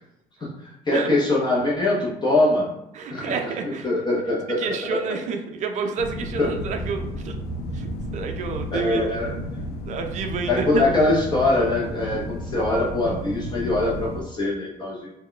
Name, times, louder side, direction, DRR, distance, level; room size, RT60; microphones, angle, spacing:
voice 1, 0.9-2.7 3.1-5.1 6.4-6.5 8.7-9.4 10.5-15.1, left 2 dB, 25° left, -4 dB, 0.6 m, -23 dB
voice 2, 2.9-3.9 4.6-7.4 7.7-9.5 9.9-10.8, right 5 dB, 45° right, 5 dB, 0.4 m, -29 dB
sound 1, 6.0-14.2, left 1 dB, 70° left, 0.5 m, -32 dB
2.2 x 2.1 x 3.7 m, 0.85 s
cardioid pair, 110°, 17 cm